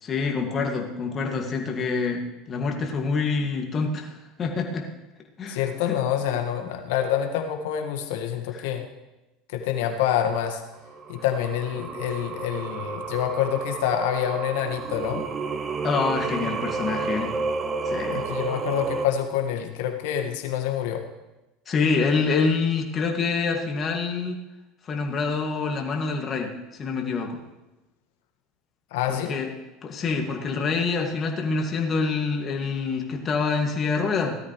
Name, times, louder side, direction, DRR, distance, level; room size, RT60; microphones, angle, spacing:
voice 1, 0.0-4.9 5.4-6.0 8.5-8.7 15.8-17.3 17.8-18.2 21.7-24.4 24.8-27.4 29.1-29.5 29.8-34.4, left 4 dB, 35° left, 2 dB, 2.2 m, -26 dB
voice 2, 5.5-8.8 9.5-10.6 11.1-15.2 18.1-21.0 28.9-29.4, left 10 dB, 70° left, 5 dB, 1.8 m, -27 dB
Singing, 10.9-19.1, right 4 dB, 35° right, 0.9 m, -31 dB
17.5 x 13.0 x 3.3 m, 1.0 s
hypercardioid pair, 80°, 0 cm